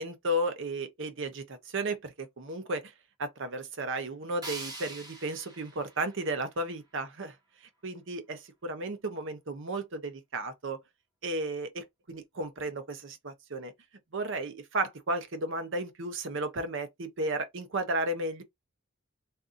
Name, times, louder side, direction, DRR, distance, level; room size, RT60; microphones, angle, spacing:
voice 1, 0.0-2.9 3.2-7.4 7.8-10.8 11.2-13.7 14.1-18.4, right 1 dB, 60° right, 0.7 m, -34 dB
sound 1, 4.4-7.4, right 2 dB, 20° right, 0.9 m, -45 dB
3.6 x 2.6 x 2.6 m
head